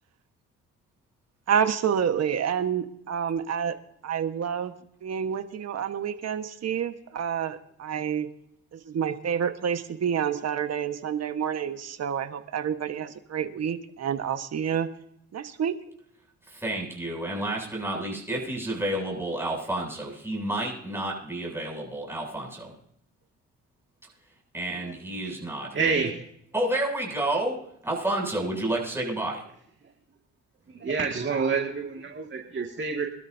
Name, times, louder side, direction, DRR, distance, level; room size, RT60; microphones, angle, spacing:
voice 1, 1.5-3.7 4.0-4.7 5.0-8.3 8.7-14.9 15.3-15.8, right 8 dB, 55° right, 8 dB, 1.5 m, -28 dB
voice 2, 16.5-22.7 24.5-26.0 26.5-27.6 27.8-29.4, right 1 dB, 10° right, -2 dB, 7.9 m, -30 dB
voice 3, 25.7-26.2 30.7-33.1, right 5 dB, 40° right, 1 dB, 2.2 m, -28 dB
25.0 x 12.5 x 2.8 m, 0.72 s
cardioid pair, 90°, 30 cm